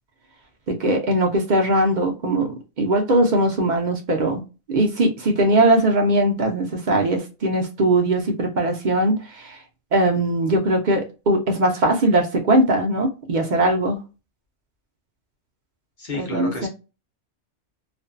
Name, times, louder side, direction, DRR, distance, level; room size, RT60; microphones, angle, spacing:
voice 1, 0.7-4.4 4.7-9.6 9.9-14.0 16.1-16.7, right 1 dB, 50° right, 2 dB, 0.6 m, -20 dB
voice 2, 16.0-16.7, left 2 dB, 45° left, 0 dB, 0.8 m, -30 dB
2.5 x 2.3 x 2.4 m, 0.29 s
omnidirectional pair, 1.2 m